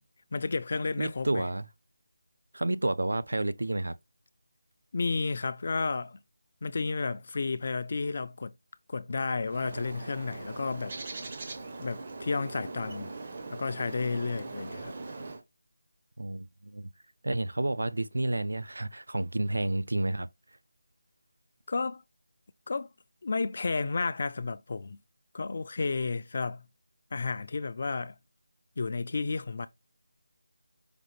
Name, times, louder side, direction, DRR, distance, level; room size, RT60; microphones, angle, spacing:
voice 1, 0.3-1.5 4.9-6.2 6.6-8.5 8.9-11.0 11.8-13.1 13.5-14.9 21.7-22.0 22.7-22.9 23.2-25.0 25.3-26.7 27.1-28.2 28.8-29.7, left 4 dB, 40° left, 0.3 m, -32 dB
voice 2, 1.0-1.7 2.5-3.9 16.2-16.9 17.2-20.3, right 2 dB, 85° right, 0.4 m, -30 dB
Bird, 9.4-15.4, right 3 dB, 35° right, 0.6 m, -41 dB
5.0 x 2.4 x 3.1 m
figure-of-eight pair, 170°, 0 cm